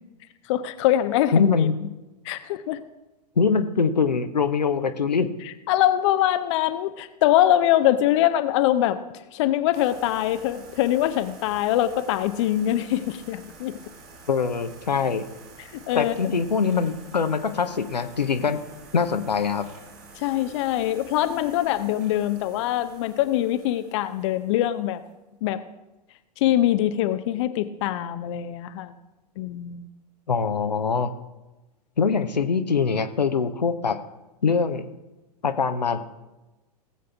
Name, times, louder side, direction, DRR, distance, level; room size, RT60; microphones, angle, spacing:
voice 1, 0.5-1.7 2.2-2.8 5.7-9.0 9.3-13.8 15.6-16.3 20.2-25.0 25.4-25.6 26.4-29.0 29.4-29.9, left 12 dB, 45° left, 11 dB, 0.6 m, -23 dB
voice 2, 1.3-1.8 3.4-5.3 14.3-15.2 15.9-18.6 18.9-19.7 30.3-31.1 32.0-34.0 34.4-34.9 35.4-36.0, left 5 dB, 80° left, 9 dB, 0.8 m, -23 dB
sound 1, 9.7-25.1, right 3 dB, 65° right, 2.4 m, -48 dB
18.0 x 7.6 x 3.4 m, 1.0 s
figure-of-eight pair, 100°, 21 cm